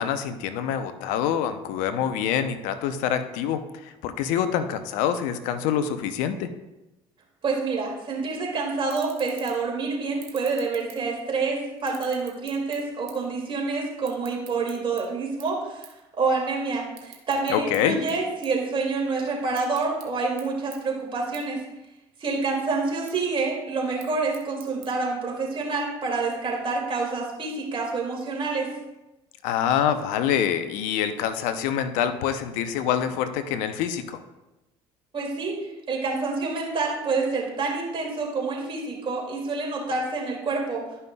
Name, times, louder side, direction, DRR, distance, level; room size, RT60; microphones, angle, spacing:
voice 1, 0.0-6.5 17.5-18.0 29.4-34.2, left 9 dB, 75° left, 10 dB, 0.7 m, -26 dB
voice 2, 7.4-21.6 22.2-28.7 35.1-35.6 35.9-40.8, right 4 dB, 40° right, -2 dB, 2.4 m, -27 dB
sound 1, 8.3-8.4 8.8-9.7 10.1-11.4 11.8-13.3 13.6-15.0 15.4-15.6 15.8-16.0 16.4-17.8 18.1-19.1 19.4-20.1 20.4-20.5 20.7-20.8 21.3-21.4 21.8-22.4 22.8-23.1 23.8-24.9, right 12 dB, 85° right, 1.0 m, -46 dB
11.5 x 5.5 x 2.3 m, 0.98 s
hypercardioid pair, 70°, 13 cm